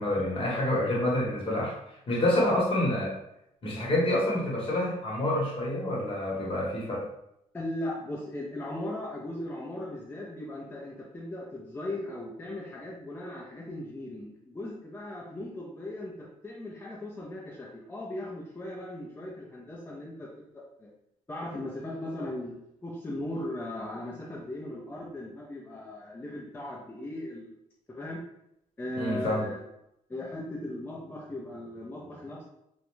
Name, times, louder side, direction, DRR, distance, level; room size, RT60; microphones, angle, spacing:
voice 1, 0.0-1.7 2.1-3.1 3.6-7.0 29.0-29.5, left 1 dB, 45° left, -4 dB, 1.0 m, -27 dB
voice 2, 7.5-20.9 21.3-22.6 22.8-27.5 27.9-28.2 28.8-29.6 30.1-32.5, left 1 dB, 15° left, -4 dB, 0.5 m, -38 dB
2.4 x 2.1 x 3.0 m, 0.80 s
cardioid pair, 105°, 13 cm